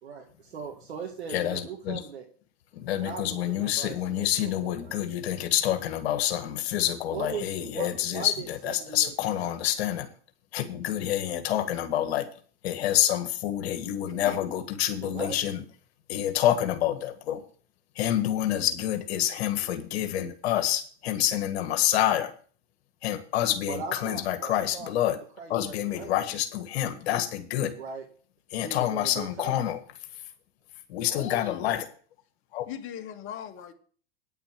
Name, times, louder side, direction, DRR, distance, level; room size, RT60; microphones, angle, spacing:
voice 1, 0.0-2.3 3.0-5.0 7.1-9.5 15.0-15.4 23.7-25.1 25.4-26.1 27.8-28.1 28.5-29.6, right 6 dB, 85° right, 1.9 m, -39 dB
voice 2, 1.3-2.0 2.7-10.1 10.5-12.3 12.6-15.6 16.1-17.4 18.0-22.3 23.0-25.2 25.5-27.7 28.5-29.8 30.9-31.8 32.5-32.7, left 12 dB, 70° left, 1.8 m, -27 dB
voice 3, 14.1-14.4 31.1-31.9 32.7-33.7, left 9 dB, 40° left, 1.8 m, -39 dB
9.7 x 6.9 x 7.5 m
hypercardioid pair, 115°, 33 cm